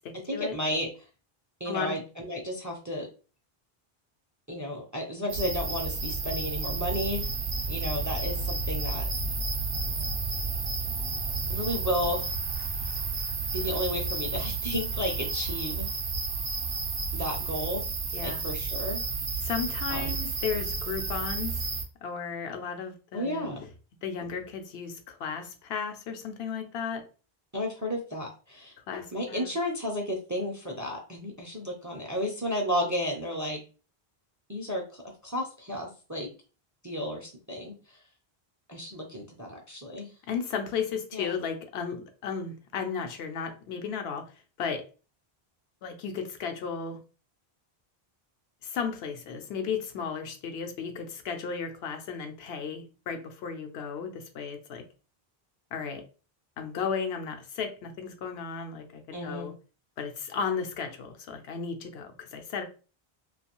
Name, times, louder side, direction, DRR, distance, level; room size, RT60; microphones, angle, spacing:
voice 1, 0.3-0.9 1.6-3.1 4.5-7.3 7.7-9.0 11.5-12.3 13.5-15.9 17.1-17.9 18.2-19.0 19.9-20.2 23.1-23.6 27.5-28.7 29.1-33.6 34.5-36.3 36.8-38.0 38.7-40.1 41.1-41.4 59.1-59.5, equal, 30° right, 0 dB, 0.3 m, -33 dB
voice 2, 1.7-2.0 18.1-18.4 19.4-21.7 22.0-23.7 24.0-27.1 28.9-29.5 40.3-44.3 44.6-44.8 45.8-47.0 48.6-54.8 55.7-56.0 56.6-59.5 60.0-62.6, left 6 dB, 80° left, 6 dB, 0.8 m, -34 dB
sound 1, 5.3-21.8, right 4 dB, 65° right, 0.8 m, -31 dB
2.5 x 2.3 x 2.9 m, 0.35 s
omnidirectional pair, 1.0 m